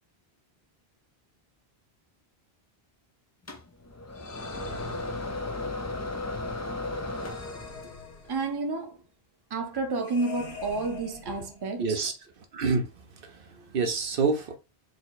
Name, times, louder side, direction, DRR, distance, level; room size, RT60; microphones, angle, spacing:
sound 1, 3.5-8.0, left 2 dB, 30° left, 0.3 m, -35 dB
sound 2, 4.1-5.8 7.1-8.8 10.0-11.9, left 5 dB, 65° left, 1.2 m, -44 dB
voice 1, 8.3-9.0 9.5-12.0, right 3 dB, 25° right, 0.6 m, -30 dB
voice 2, 11.8-14.6, right 4 dB, 65° right, 0.8 m, -29 dB
4.8 x 2.0 x 3.9 m
omnidirectional pair, 1.0 m